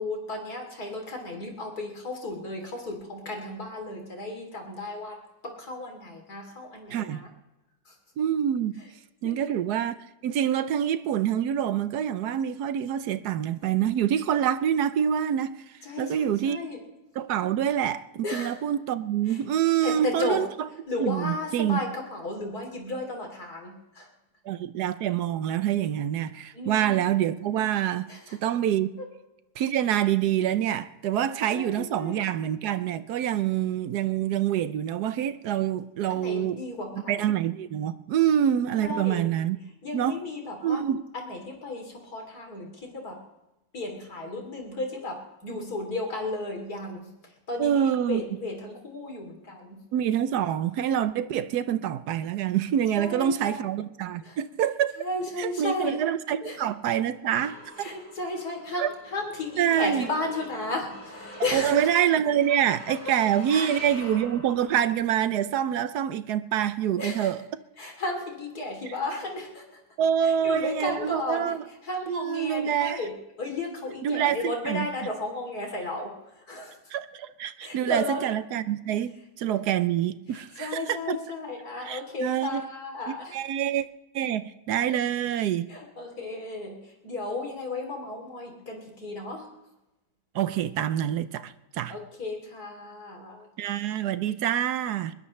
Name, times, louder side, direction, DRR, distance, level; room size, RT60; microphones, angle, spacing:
voice 1, 0.0-5.2 5.4-7.3 7.9-8.0 9.2-9.6 15.8-16.8 18.2-18.6 19.3-19.4 19.8-20.4 20.9-24.1 26.5-27.1 28.1-28.4 29.0-29.1 31.5-32.2 36.1-37.3 38.8-39.2 39.8-40.8 41.1-43.2 43.7-47.1 47.5-49.8 52.9-53.6 54.2-54.4 55.0-56.0 56.4-56.6 57.8-61.9 63.5-63.7 67.0-67.3 67.8-69.6 70.2-71.5 71.8-76.1 76.5-76.8 77.6-78.3 80.3-83.4 85.7-89.5 91.9-93.5, left 2 dB, 55° left, 3.7 m, -34 dB
voice 2, 6.9-7.2 8.2-8.8 9.2-10.0 10.2-15.6 16.0-16.6 17.2-20.5 21.0-21.8 24.5-29.0 29.6-36.6 37.1-39.6 39.9-40.2 40.6-41.0 47.6-48.4 49.9-54.9 55.4-57.9 58.8-58.9 59.6-60.1 61.5-67.4 70.0-71.6 72.1-73.0 74.0-74.9 76.9-81.2 81.8-82.7 83.3-83.8 84.1-85.7 90.3-91.9 93.6-95.1, right 10 dB, 65° right, 1.1 m, -26 dB
sound 1, 56.5-65.0, left 1 dB, 5° left, 6.8 m, -46 dB
22.0 x 20.0 x 3.2 m
omnidirectional pair, 2.0 m